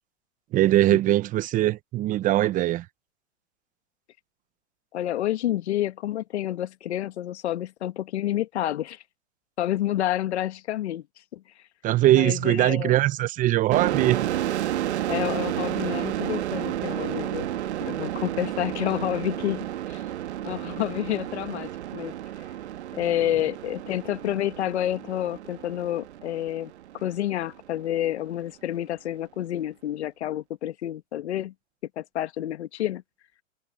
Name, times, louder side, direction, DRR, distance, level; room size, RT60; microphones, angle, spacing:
voice 1, 0.5-2.9 11.8-14.3, right 14 dB, 20° right, 0.9 m, -21 dB
voice 2, 4.9-9.0 9.6-11.0 11.3-11.4 12.1-13.0 15.1-17.5 17.8-20.0 20.4-22.1 22.9-31.5 32.0-33.0, left 12 dB, 60° left, 1.9 m, -29 dB
sound 1, 13.7-27.1, right 12 dB, 60° right, 2.2 m, -31 dB
hypercardioid pair, 125°, 38 cm